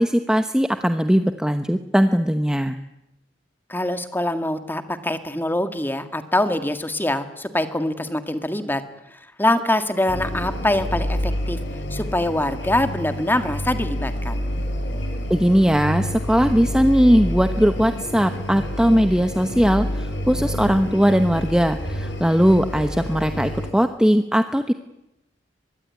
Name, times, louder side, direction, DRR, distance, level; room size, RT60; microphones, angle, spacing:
voice 1, 0.0-2.8 15.3-24.7, equal, 5° right, 7 dB, 1.0 m, -19 dB
voice 2, 3.7-8.8 9.4-11.6 11.9-14.4, left 1 dB, 10° left, 8 dB, 1.9 m, -24 dB
sound 1, 10.1-23.7, equal, 70° left, 4.6 m, -28 dB
24.5 x 22.0 x 9.6 m, 0.89 s
head